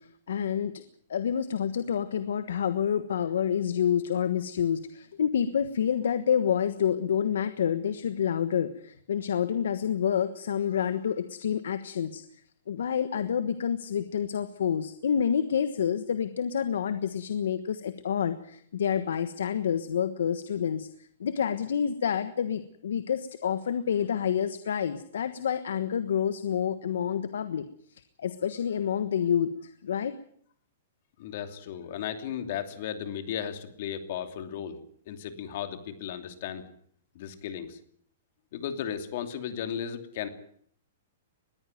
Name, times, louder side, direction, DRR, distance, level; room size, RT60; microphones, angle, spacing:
voice 1, 0.3-0.8 1.1-12.2 12.7-27.6 27.9-30.1, left 8 dB, 85° left, 12 dB, 1.3 m, -28 dB
voice 2, 31.2-34.8 35.1-36.6 37.1-37.8 38.5-40.3, left 9 dB, 50° left, 8 dB, 2.8 m, -35 dB
21.0 x 14.5 x 9.2 m, 0.63 s
hypercardioid pair, 165°, 0 cm